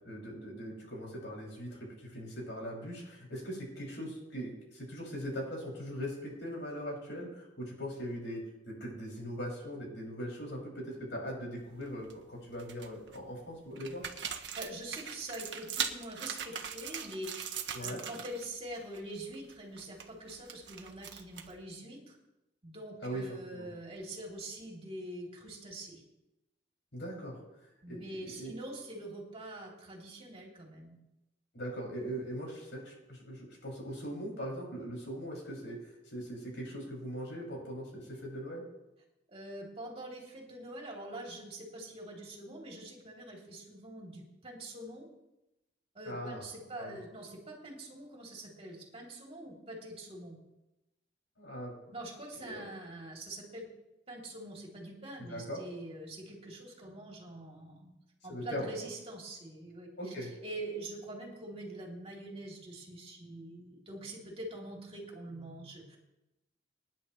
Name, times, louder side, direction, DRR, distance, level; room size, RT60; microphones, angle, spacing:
voice 1, 0.0-14.1 17.7-18.0 23.0-23.2 23.5-23.7 26.9-27.4 27.9-28.5 31.5-38.6 46.0-46.4 46.8-47.0 51.4-51.7 52.4-52.6 55.3-55.6 58.3-58.7 60.0-60.3, equal, 70° left, -2 dB, 6.2 m, -40 dB
sound 1, 11.6-12.1 12.5-13.2 13.8-18.5 18.7-19.0 19.3-21.6, right 8 dB, 65° right, 1.3 m, -40 dB
voice 2, 14.6-22.2 22.6-26.0 27.8-31.0 39.3-45.1 45.9-50.4 51.9-53.7 54.1-57.9 58.2-66.0, right 1 dB, 30° right, -2 dB, 3.0 m, -44 dB
26.0 x 10.5 x 3.2 m, 0.94 s
head